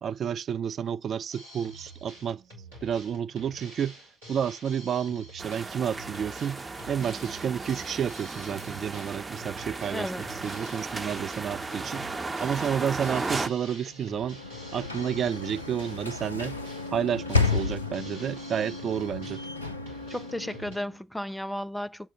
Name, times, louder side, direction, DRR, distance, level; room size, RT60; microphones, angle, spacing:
voice 1, 0.0-2.4 2.8-3.9 4.3-6.6 6.9-12.1 12.4-14.4 14.7-16.6 16.9-19.4, right 8 dB, 50° right, 0.4 m, -30 dB
Drum kit, 1.3-20.8, right 1 dB, 80° right, 3.6 m, -48 dB
sound 1, 5.4-13.5, right 3 dB, 25° right, 0.9 m, -35 dB
voice 2, 9.9-10.2 20.1-22.1, left 1 dB, 5° left, 0.7 m, -34 dB
Sliding door / Slam, 13.9-20.9, left 4 dB, 90° left, 0.5 m, -32 dB
7.4 x 4.3 x 5.4 m
figure-of-eight pair, 45°, 0 cm